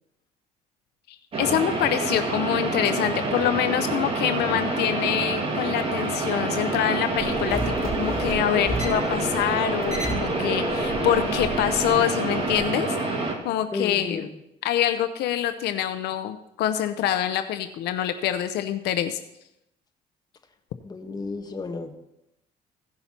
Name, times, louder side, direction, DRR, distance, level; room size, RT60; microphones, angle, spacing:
sound 1, 1.3-13.3, right 3 dB, 35° right, 2.0 m, -27 dB
voice 1, 1.4-12.9 13.2-14.3 14.6-19.2, left 11 dB, 75° left, 10 dB, 0.6 m, -25 dB
sound 2, 7.2-12.6, equal, ahead, 4.1 m, -32 dB
voice 2, 13.7-14.3 20.8-22.0, left 3 dB, 25° left, 4 dB, 1.3 m, -32 dB
16.0 x 5.7 x 4.4 m, 0.85 s
cardioid pair, 110°, 17 cm